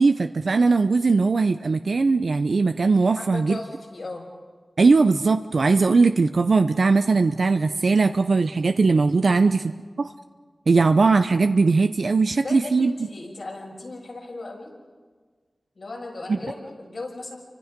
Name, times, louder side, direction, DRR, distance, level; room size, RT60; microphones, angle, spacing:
voice 1, 0.0-3.6 4.8-9.6 10.0-10.1 10.7-12.9 16.3-16.4, right 4 dB, 75° right, 7 dB, 0.7 m, -19 dB
voice 2, 3.1-4.3 9.2-9.4 12.3-14.7 15.7-17.4, left 2 dB, 80° left, -1 dB, 6.8 m, -36 dB
30.0 x 25.0 x 5.2 m, 1.5 s
cardioid pair, 40°, 0 cm